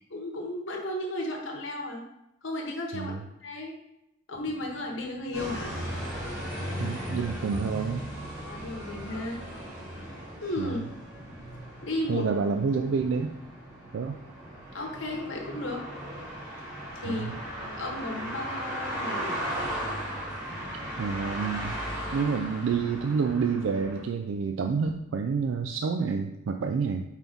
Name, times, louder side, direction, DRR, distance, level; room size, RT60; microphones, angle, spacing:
voice 1, 0.0-2.0 2.4-3.1 3.4-3.7 4.3-5.8 8.4-9.4 10.4-10.8 11.8-12.3 14.7-15.8 16.9-19.4, left 1 dB, 75° left, 0 dB, 1.2 m, -34 dB
Train, 4.3-24.1, equal, 15° left, 0.6 m, -52 dB
sound 1, 5.3-24.0, equal, 20° right, 2.3 m, -37 dB
voice 2, 6.8-8.1 10.6-10.8 12.1-13.3 13.9-14.2 17.0-17.3 21.0-21.7 22.1-27.0, right 5 dB, 80° right, 4 dB, 0.4 m, -28 dB
4.5 x 3.9 x 5.3 m, 0.87 s
head